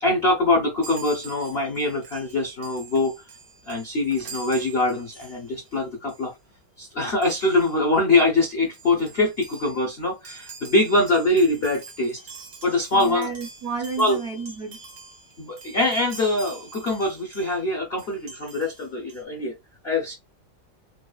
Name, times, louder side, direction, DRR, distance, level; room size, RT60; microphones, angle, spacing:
voice 1, 0.0-3.1 3.7-6.3 6.8-12.2 12.6-13.3 14.0-14.2 15.4-19.6 19.8-20.1, left 2 dB, 85° left, 0.5 m, -23 dB
Chime, 0.8-5.8 6.1-6.3 7.2-7.8 8.4-8.5 8.6-17.6 18.0-19.2, right 4 dB, 55° right, 0.9 m, -45 dB
voice 2, 12.9-14.8, right 5 dB, 85° right, 0.5 m, -31 dB
4.6 x 2.3 x 2.3 m
omnidirectional pair, 2.2 m